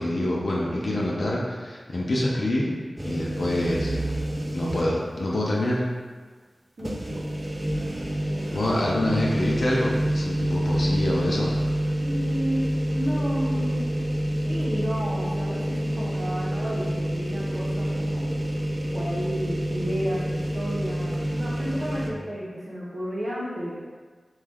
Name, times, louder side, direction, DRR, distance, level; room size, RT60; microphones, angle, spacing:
voice 1, 0.0-2.7 3.0-4.0 4.5-5.8 8.5-11.7, left 1 dB, 60° left, -4 dB, 0.5 m, -26 dB
sound 1, 3.0-5.1 5.5-5.6 6.8-22.1, right 1 dB, 20° right, 0.4 m, -28 dB
voice 2, 6.8-7.3 8.3-9.2 12.0-13.8 14.4-18.3 18.9-23.8, equal, 60° right, -8 dB, 0.7 m, -32 dB
3.0 x 2.3 x 3.4 m, 1.5 s
wide cardioid pair, 60°, 0 cm